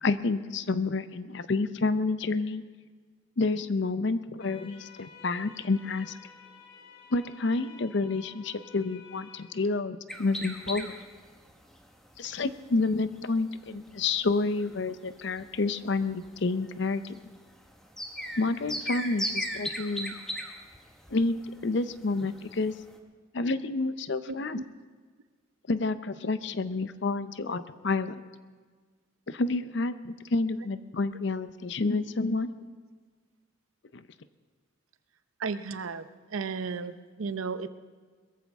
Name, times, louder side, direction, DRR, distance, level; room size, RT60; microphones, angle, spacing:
voice 1, 0.0-2.6 3.4-6.1 7.1-10.9 12.2-17.1 18.4-20.1 21.1-21.4 21.6-22.7 23.3-24.6 25.7-28.1 29.3-32.5 33.9-34.0, left 3 dB, 60° left, 13 dB, 0.6 m, -29 dB
sound 1, 4.4-9.4, left 6 dB, 85° left, 3.2 m, -52 dB
sound 2, 10.1-23.0, equal, ahead, 1.1 m, -40 dB
voice 2, 24.3-24.7 35.4-37.7, right 5 dB, 90° right, 12 dB, 0.7 m, -34 dB
21.5 x 14.5 x 3.6 m, 1.5 s
head